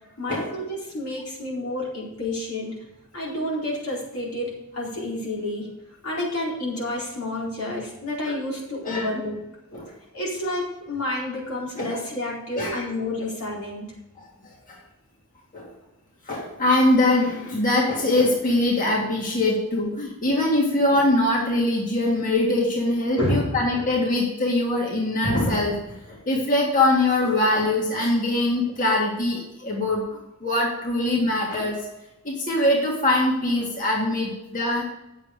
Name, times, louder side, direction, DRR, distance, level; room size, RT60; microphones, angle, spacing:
voice 1, 0.2-2.7 3.1-5.7 6.0-9.4 10.1-13.9 23.2-23.6, left 1 dB, 90° left, -4 dB, 4.4 m, -29 dB
voice 2, 14.2-14.8 15.5-15.7 16.3-31.8 32.2-34.9, left 1 dB, 40° left, -3 dB, 2.1 m, -23 dB
9.5 x 7.6 x 5.2 m, 0.90 s
head